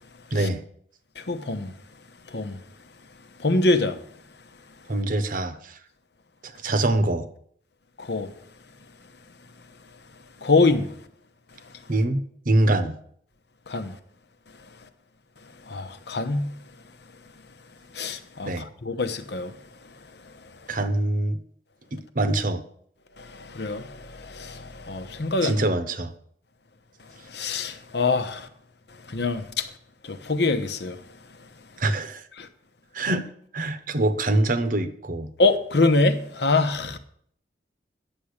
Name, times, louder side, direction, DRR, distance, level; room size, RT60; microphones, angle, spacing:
voice 1, 0.3-0.6 4.9-5.8 6.4-7.3 11.9-12.9 18.4-18.7 20.7-21.4 21.9-22.6 25.4-26.1 31.8-32.2 32.9-33.3 33.5-35.3, right 2 dB, 50° right, 0.9 m, -24 dB
voice 2, 1.2-1.7 2.3-2.6 3.4-4.0 8.0-8.3 10.4-10.9 13.7-13.9 15.7-16.5 17.9-19.5 23.2-25.7 27.3-28.5 29.1-29.7 30.0-31.0 32.4-32.5 35.4-37.0, left 3 dB, 65° left, 1.0 m, -24 dB
10.0 x 7.2 x 6.6 m
head